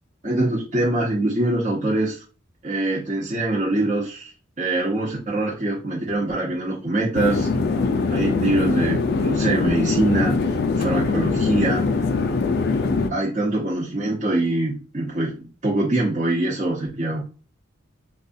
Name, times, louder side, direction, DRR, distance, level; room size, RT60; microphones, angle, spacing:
voice 1, 0.2-2.2 2.6-4.3 4.6-7.5 8.1-10.4 10.8-11.9 13.1-17.2, right 2 dB, 35° right, -4 dB, 0.8 m, -23 dB
sound 1, 7.1-13.1, left 4 dB, 50° left, 0.4 m, -22 dB
4.0 x 2.3 x 2.6 m, 0.35 s
head